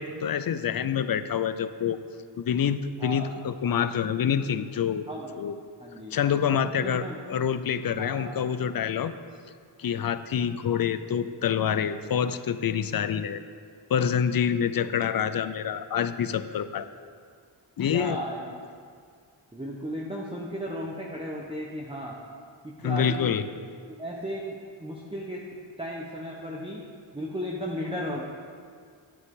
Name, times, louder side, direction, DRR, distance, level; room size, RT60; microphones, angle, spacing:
voice 1, 0.0-2.0 2.4-5.0 5.4-5.6 6.1-9.1 9.8-13.4 13.9-16.9 17.8-18.2 22.8-23.5, left 8 dB, 50° left, 13 dB, 0.5 m, -27 dB
voice 2, 5.8-6.2 6.8-7.2 8.0-8.3 17.9-18.5 19.5-22.2 22.6-23.3 23.9-25.4 25.8-26.8 27.1-28.2, equal, 10° right, -3 dB, 1.0 m, -35 dB
9.9 x 8.3 x 3.6 m, 2.1 s
cardioid pair, 55°, 47 cm